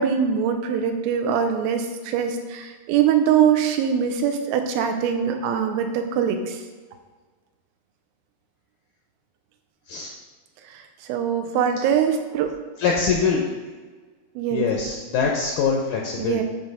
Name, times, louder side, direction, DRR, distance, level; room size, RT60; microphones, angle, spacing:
voice 1, 0.0-6.6 10.7-10.8 11.1-12.5 14.4-14.6 16.2-16.4, right 8 dB, 75° right, 5 dB, 2.4 m, -22 dB
voice 2, 12.8-13.7 14.5-16.4, left 5 dB, 90° left, -1 dB, 1.7 m, -23 dB
9.5 x 3.3 x 5.4 m, 1.4 s
omnidirectional pair, 4.6 m